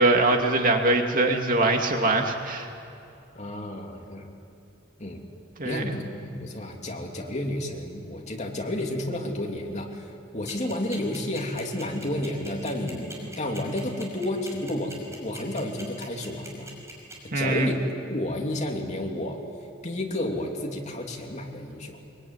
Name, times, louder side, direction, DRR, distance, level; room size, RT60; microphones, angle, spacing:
voice 1, 0.0-2.7 5.6-5.8 17.3-17.7, right 2 dB, 45° right, 3 dB, 2.4 m, -22 dB
voice 2, 3.3-4.3 5.0-5.2 5.6-16.7 17.3-19.4 19.8-22.0, left 1 dB, 35° left, 1 dB, 2.9 m, -31 dB
sound 1, 10.5-17.1, right 2 dB, 15° right, 6.0 m, -41 dB
24.0 x 23.5 x 9.6 m, 2.7 s
head